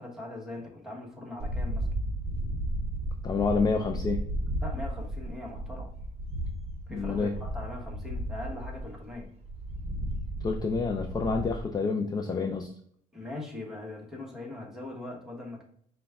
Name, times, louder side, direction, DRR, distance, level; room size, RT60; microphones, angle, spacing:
voice 1, 0.0-1.9 4.6-5.9 6.9-9.3 13.1-15.6, left 2 dB, 5° right, -2 dB, 1.2 m, -40 dB
sound 1, 1.4-11.6, right 1 dB, 35° right, 0.8 m, -34 dB
voice 2, 3.2-4.2 6.9-7.3 10.4-12.7, left 4 dB, 25° left, 3 dB, 0.4 m, -28 dB
5.0 x 2.2 x 3.5 m, 0.65 s
cardioid pair, 110°, 17 cm